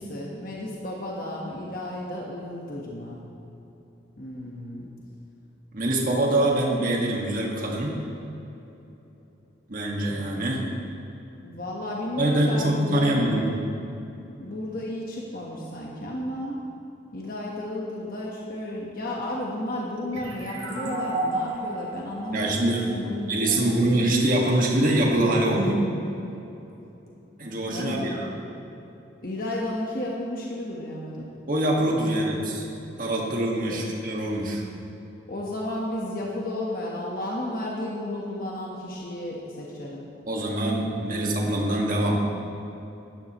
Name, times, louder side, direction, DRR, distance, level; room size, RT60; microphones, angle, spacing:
voice 1, 0.0-3.2 4.2-4.9 11.4-13.1 14.4-16.6 17.1-24.1 27.7-28.2 29.2-31.2 32.1-32.2 33.7-33.8 35.3-40.1, left 1 dB, 50° left, -3 dB, 1.3 m, -33 dB
voice 2, 5.7-8.0 9.7-10.6 12.2-13.5 22.3-25.8 27.4-28.3 31.5-32.6 33.0-34.6 40.3-42.2, right 1 dB, 45° right, -1 dB, 1.7 m, -24 dB
sound 1, 20.1-23.6, right 2 dB, 85° right, 2.3 m, -32 dB
16.5 x 12.0 x 3.1 m, 3.0 s
head